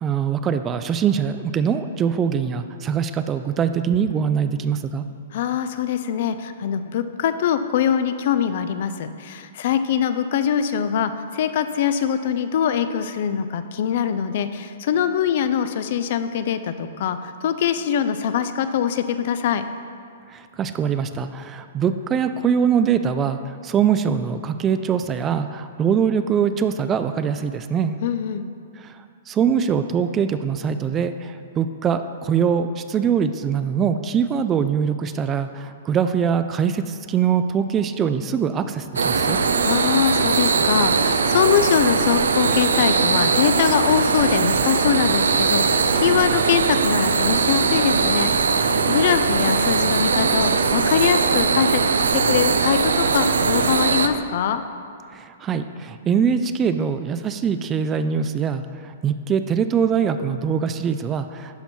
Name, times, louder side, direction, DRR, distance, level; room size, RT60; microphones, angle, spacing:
voice 1, 0.0-5.1 20.3-28.0 28.8-29.0 29.3-39.4 55.1-61.6, right 7 dB, 20° right, 10 dB, 0.3 m, -23 dB
voice 2, 5.3-19.6 28.0-28.4 39.6-51.8 52.2-54.6, left 8 dB, 55° left, 11 dB, 0.5 m, -23 dB
sound 1, 39.0-54.1, right 5 dB, 85° right, 0.5 m, -20 dB
11.5 x 4.4 x 4.4 m, 2.3 s
hypercardioid pair, 130°, 0 cm